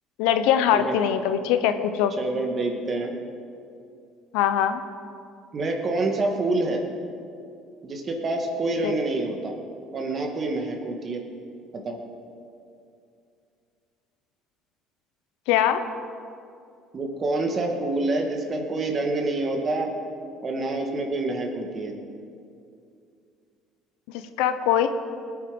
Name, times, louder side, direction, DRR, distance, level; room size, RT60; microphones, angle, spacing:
voice 1, 0.2-2.1 4.3-4.8 8.8-8.9 15.5-15.8 24.4-24.9, left 10 dB, 85° left, 9 dB, 0.8 m, -22 dB
voice 2, 2.2-3.1 5.5-6.8 7.8-9.6 9.9-11.2 11.7-12.0 16.9-19.9 20.4-21.9, right 2 dB, 35° right, 2 dB, 2.0 m, -27 dB
20.0 x 9.0 x 5.3 m, 2.5 s
cardioid pair, 105°, 0 cm